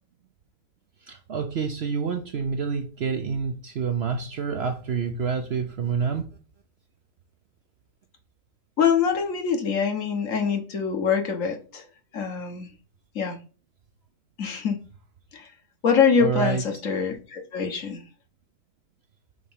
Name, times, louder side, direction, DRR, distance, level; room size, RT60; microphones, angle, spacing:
voice 1, 1.1-6.3 16.2-16.6, right 6 dB, 55° right, 7 dB, 0.7 m, -28 dB
voice 2, 8.8-11.8 12.1-12.7 13.1-13.4 14.4-14.8 15.3-15.5 15.8-18.0, left 6 dB, 60° left, 5 dB, 1.5 m, -24 dB
5.0 x 4.2 x 5.5 m, 0.36 s
omnidirectional pair, 1.6 m